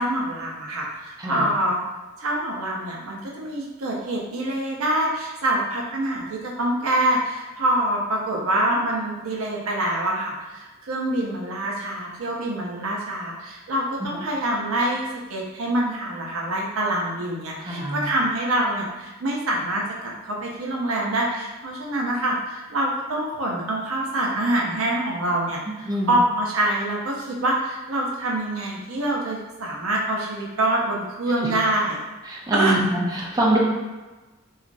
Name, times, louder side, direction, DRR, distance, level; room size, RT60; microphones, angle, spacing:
voice 1, 0.0-1.8 2.2-32.0 32.5-32.8, right 1 dB, 70° right, -2 dB, 0.6 m, -25 dB
voice 2, 17.6-18.1 25.9-26.1 32.3-33.6, right 1 dB, 20° right, -3 dB, 0.5 m, -24 dB
2.9 x 2.4 x 2.5 m, 1.2 s
head